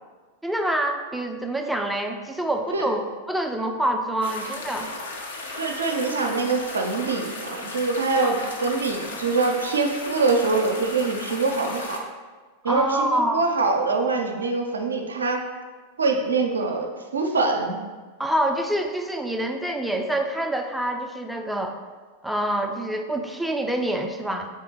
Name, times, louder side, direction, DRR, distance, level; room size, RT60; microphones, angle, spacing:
voice 1, 0.4-4.9 8.2-8.3 12.6-13.4 18.2-21.8 22.2-24.5, right 1 dB, ahead, 4 dB, 0.4 m, -26 dB
sound 1, 4.2-12.0, left 3 dB, 65° left, 0.6 m, -35 dB
voice 2, 5.5-12.0 12.6-15.4 16.0-17.8, right 3 dB, 70° right, 3 dB, 0.5 m, -24 dB
4.7 x 3.5 x 2.9 m, 1.4 s
figure-of-eight pair, 90°, 0 cm